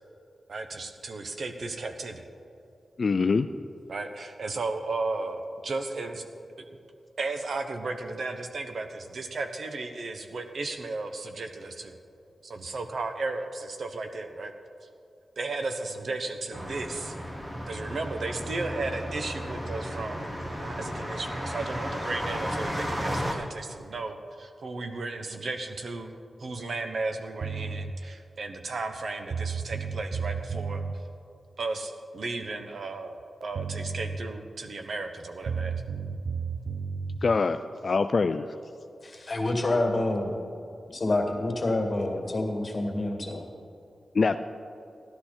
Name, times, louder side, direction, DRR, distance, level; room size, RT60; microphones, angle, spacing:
voice 1, 0.5-2.3 3.9-6.2 7.2-12.0 12.4-14.5 14.8-14.9 15.4-17.1 17.7-20.3 20.6-30.8 31.6-35.8, right 3 dB, 65° right, 6 dB, 1.0 m, -34 dB
voice 2, 3.0-3.5 37.2-38.5 44.1-44.4, left 4 dB, 55° left, 9 dB, 0.3 m, -24 dB
sound 1, 16.5-23.3, equal, 30° right, 1.5 m, -34 dB
sound 2, 27.4-27.9 28.9-29.0 29.3-31.0 33.2-33.3 33.5-34.2 35.4-37.2, right 5 dB, 85° right, 0.4 m, -32 dB
voice 3, 39.3-40.3 41.0-43.5, left 2 dB, 35° left, 1 dB, 2.1 m, -27 dB
14.0 x 11.5 x 4.3 m, 2.6 s
wide cardioid pair, 95°, 0 cm